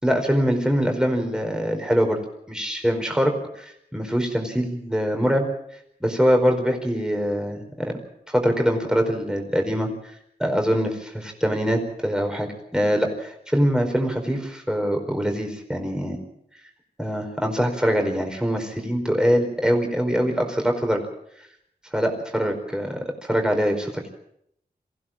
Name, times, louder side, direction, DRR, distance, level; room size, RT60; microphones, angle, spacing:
voice 1, 0.0-2.2 2.5-5.5 6.0-7.9 8.3-10.1 10.4-16.2 17.0-21.0 21.9-24.0, equal, 5° right, 3 dB, 4.7 m, -23 dB
23.0 x 16.0 x 7.5 m, 0.74 s
wide cardioid pair, 60°, 16 cm